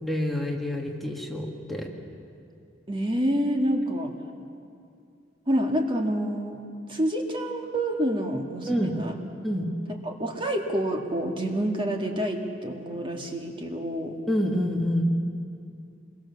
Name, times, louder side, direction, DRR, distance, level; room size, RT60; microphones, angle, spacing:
voice 1, 0.0-1.9 8.7-9.0 9.4-9.7 14.3-15.0, left 1 dB, ahead, 0 dB, 1.9 m, -27 dB
voice 2, 2.9-4.1 5.5-6.6 6.9-9.1 10.0-14.2, equal, 30° right, 2 dB, 2.1 m, -28 dB
26.5 x 22.5 x 7.1 m, 2.5 s
head